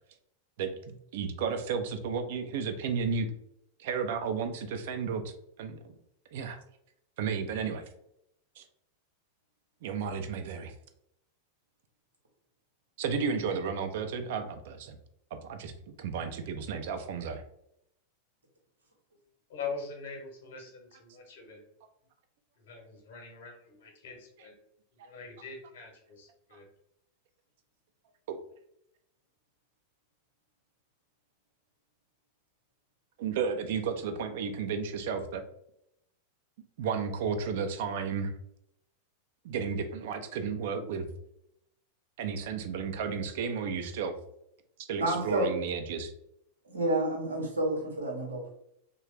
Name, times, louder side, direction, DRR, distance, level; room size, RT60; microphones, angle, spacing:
voice 1, 0.6-3.3 3.8-5.3 5.6-6.0 6.3-6.6 7.2-7.8 8.6-8.7 9.8-10.7 13.0-15.0 15.4-17.4 26.5-26.6 28.3-28.4 33.2-35.4 36.8-38.3 39.4-41.1 42.2-44.1 44.9-46.1, right 6 dB, 55° right, 7 dB, 0.4 m, -33 dB
voice 2, 19.5-21.6 22.6-24.5 24.9-26.7, left 5 dB, 55° left, 1 dB, 0.9 m, -43 dB
voice 3, 45.0-45.5 46.6-48.5, right 1 dB, 75° right, 0 dB, 0.9 m, -29 dB
3.1 x 2.2 x 3.2 m, 0.77 s
figure-of-eight pair, 90°, 0 cm